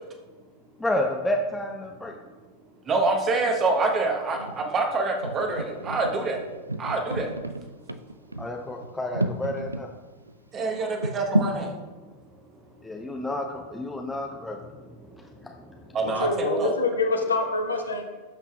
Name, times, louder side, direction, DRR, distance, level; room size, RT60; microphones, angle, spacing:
voice 1, 0.8-2.1 8.4-9.9 12.8-14.6 15.4-15.5, left 1 dB, 5° left, 1 dB, 0.6 m, -30 dB
voice 2, 2.9-6.4 6.8-7.3 10.5-11.7 14.8-14.9 15.8-16.7, right 3 dB, 25° right, 3 dB, 1.1 m, -26 dB
sound 1, 4.3-4.7 5.2-9.8 10.3-10.4 11.0-11.6, right 1 dB, 85° right, 0.3 m, -31 dB
voice 3, 16.0-18.0, left 3 dB, 75° left, 4 dB, 0.9 m, -26 dB
12.5 x 5.7 x 2.4 m, 1.3 s
figure-of-eight pair, 90°, 0 cm